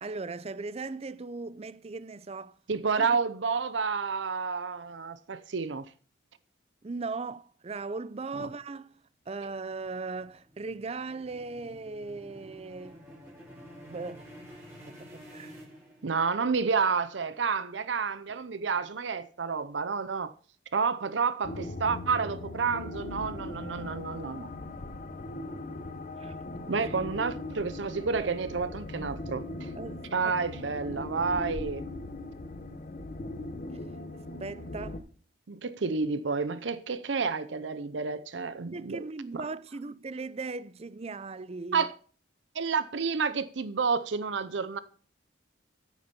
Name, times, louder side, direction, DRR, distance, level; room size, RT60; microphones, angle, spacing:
voice 1, 0.0-2.6 3.0-3.1 6.8-8.9 9.3-13.0 13.8-14.3 14.9-15.6 26.2-26.4 28.2-28.3 28.6-28.7 29.8-30.3 34.1-35.0 38.7-41.9, right 3 dB, 35° right, 0.5 m, -38 dB
voice 2, 2.7-5.9 8.4-8.5 16.0-20.3 20.7-24.5 26.7-29.7 30.1-31.9 35.5-39.0 39.3-39.4 41.7-41.9 42.5-44.8, right 5 dB, 75° right, 0.6 m, -30 dB
sound 1, 9.2-16.5, equal, 15° right, 4.0 m, -50 dB
sound 2, 21.4-35.0, left 2 dB, 45° left, 1.1 m, -39 dB
9.7 x 8.3 x 5.3 m
head